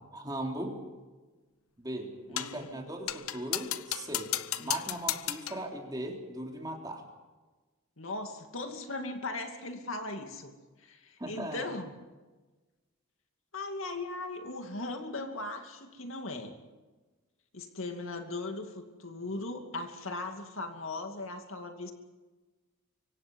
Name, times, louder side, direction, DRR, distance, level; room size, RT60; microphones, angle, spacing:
voice 1, 0.1-0.8 1.8-4.3 4.6-7.0 11.2-11.6, right 1 dB, 20° right, 1 dB, 3.5 m, -38 dB
voice 2, 2.3-2.7 4.6-4.8 8.0-10.5 10.8-11.9 13.5-16.5 17.5-21.9, left 2 dB, 65° left, 5 dB, 2.5 m, -38 dB
sound 1, 2.4-2.6 3.1-5.7, left 13 dB, 85° left, 0.9 m, -34 dB
25.0 x 25.0 x 5.5 m, 1.2 s
head